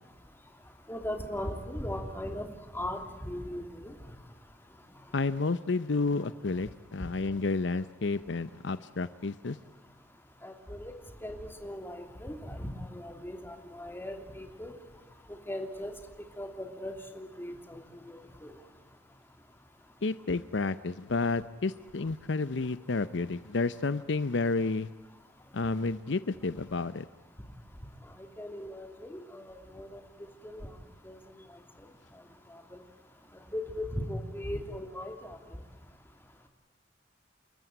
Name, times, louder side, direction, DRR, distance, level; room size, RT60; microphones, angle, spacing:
voice 1, 0.9-2.5 2.7-3.9 10.4-10.9 11.2-14.7 15.3-15.9 16.4-18.5 28.1-30.0 30.4-30.7 31.0-31.9 32.1-32.2 32.5-32.8 33.5-35.6, left 1 dB, 10° left, 5 dB, 2.9 m, -39 dB
voice 2, 5.1-9.6 20.0-24.9 25.5-27.0, left 3 dB, 65° left, 14 dB, 0.7 m, -31 dB
29.5 x 14.0 x 9.3 m, 1.3 s
head